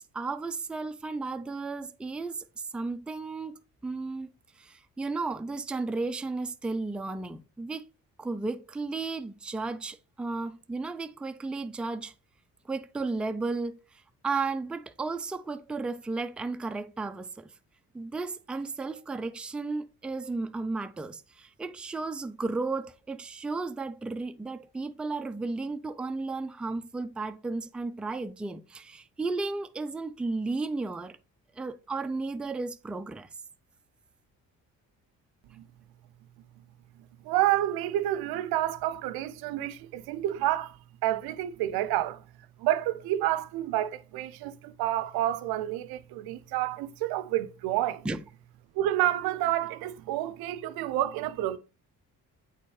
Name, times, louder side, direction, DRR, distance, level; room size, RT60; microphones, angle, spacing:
voice 1, 0.0-3.5 3.8-7.9 8.2-12.1 12.6-17.5 17.9-31.2 31.5-33.3 48.0-48.2, right 3 dB, 5° right, 0.3 m, -34 dB
voice 2, 37.2-40.8 41.0-42.2 42.6-48.1 48.8-51.6, right 13 dB, 80° right, 0.5 m, -29 dB
8.2 x 4.3 x 3.1 m
supercardioid pair, 65°, 37 cm